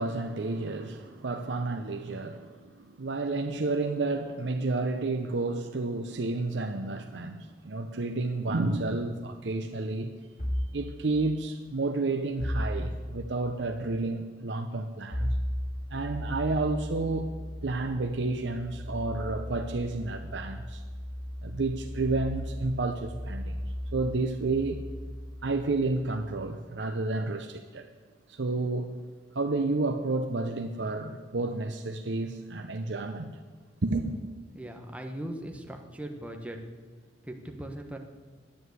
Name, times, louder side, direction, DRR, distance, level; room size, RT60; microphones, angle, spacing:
voice 1, 0.0-10.1 10.7-15.3 15.9-17.3 17.6-20.8 21.4-23.6 23.9-24.9 25.4-27.9 28.3-28.9 29.3-33.4 33.8-34.1, right 3 dB, 75° right, 6 dB, 0.7 m, -31 dB
sound 1, 10.4-10.8 12.4-13.3 15.1-26.5, equal, 45° left, 3.6 m, -36 dB
voice 2, 34.5-36.6 37.2-38.0, right 1 dB, 5° right, 3 dB, 1.1 m, -39 dB
10.5 x 9.4 x 8.0 m, 1.4 s
head